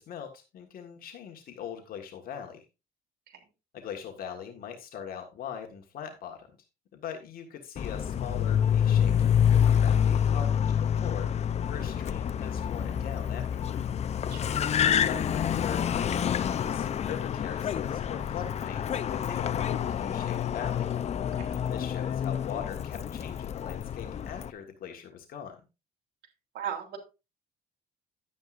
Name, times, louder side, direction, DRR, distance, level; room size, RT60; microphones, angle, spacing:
voice 1, 0.0-2.6 3.7-6.5 6.9-11.3 11.7-13.8 15.0-20.9 21.7-25.6, left 8 dB, 60° left, 3 dB, 1.6 m, -41 dB
Car, 7.8-24.5, left 8 dB, 40° left, 0.6 m, -27 dB
voice 2, 26.5-27.0, right 9 dB, 75° right, 2 dB, 3.2 m, -36 dB
11.0 x 9.4 x 2.5 m, 0.28 s
cardioid pair, 110°, 17 cm